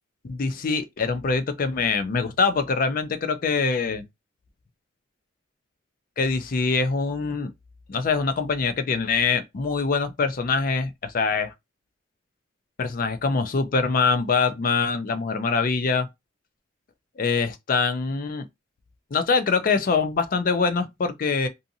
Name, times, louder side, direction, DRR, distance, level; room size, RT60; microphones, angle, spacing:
voice 1, 0.2-4.0 6.2-7.5 7.9-11.5 12.8-16.1 17.2-18.5 19.1-21.5, left 4 dB, 45° left, 0.4 m, -24 dB
2.7 x 2.5 x 2.5 m
head